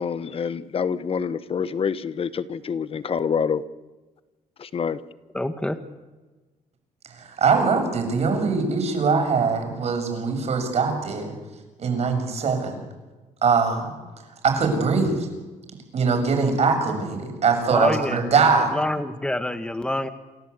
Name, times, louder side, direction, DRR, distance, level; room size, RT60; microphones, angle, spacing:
voice 1, 0.0-3.6 4.6-5.0, left 6 dB, 45° left, 14 dB, 1.2 m, -26 dB
voice 2, 5.3-5.8 17.7-18.3 18.7-20.1, left 1 dB, 5° left, 9 dB, 1.6 m, -26 dB
voice 3, 7.2-11.3 11.8-12.8 13.4-13.9 14.4-15.2 15.9-18.7, right 5 dB, 55° right, 4 dB, 7.1 m, -22 dB
28.5 x 14.0 x 8.4 m, 1.2 s
cardioid pair, 95°, 13 cm